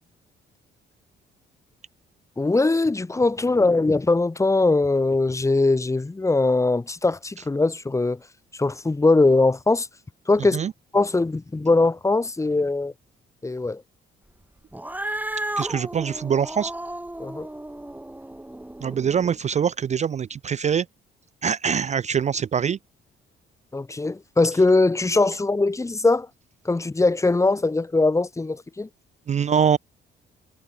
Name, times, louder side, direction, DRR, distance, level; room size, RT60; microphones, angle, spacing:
voice 1, 2.4-8.2 8.6-9.9 10.3-10.6 10.9-12.9 13.4-13.8 17.2-17.5 23.7-26.3 26.6-28.9, left 3 dB, 15° left, 1.0 m, -21 dB
Cat, 14.7-19.4, right 1 dB, 10° right, 7.6 m, -33 dB
voice 2, 15.6-16.7 18.8-20.9 21.4-22.8 29.3-29.8, right 7 dB, 35° right, 0.4 m, -23 dB
cardioid pair, 90°, 20 cm